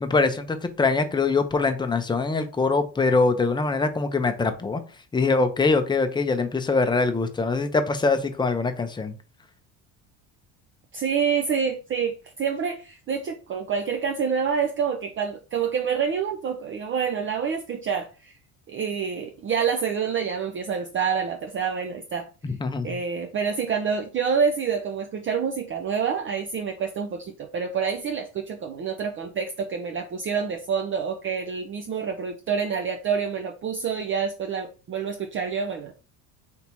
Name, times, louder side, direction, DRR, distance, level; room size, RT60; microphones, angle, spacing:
voice 1, 0.0-4.8 5.1-9.1 22.4-22.9, left 3 dB, 10° left, 0.6 m, -23 dB
voice 2, 10.9-18.4 18.7-22.3 22.8-35.9, right 6 dB, 35° right, 0.5 m, -27 dB
3.5 x 2.8 x 4.4 m
supercardioid pair, 95°, 37 cm